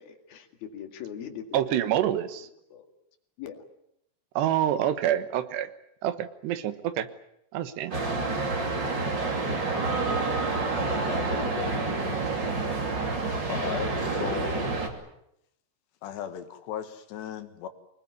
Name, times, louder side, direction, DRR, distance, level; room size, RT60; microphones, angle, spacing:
voice 1, 0.0-1.9 2.7-2.9 3.4-3.6 9.5-9.6 11.1-12.2, left 8 dB, 65° left, 6 dB, 3.8 m, -39 dB
voice 2, 1.5-2.5 4.4-5.7 6.0-7.1 7.5-7.9, right 11 dB, 80° right, 12 dB, 3.4 m, -27 dB
sound 1, 7.9-14.9, right 3 dB, 30° right, 2.9 m, -28 dB
voice 3, 13.5-14.7 16.0-17.7, left 9 dB, 85° left, 9 dB, 3.8 m, -36 dB
25.0 x 20.5 x 9.6 m, 0.78 s
omnidirectional pair, 4.8 m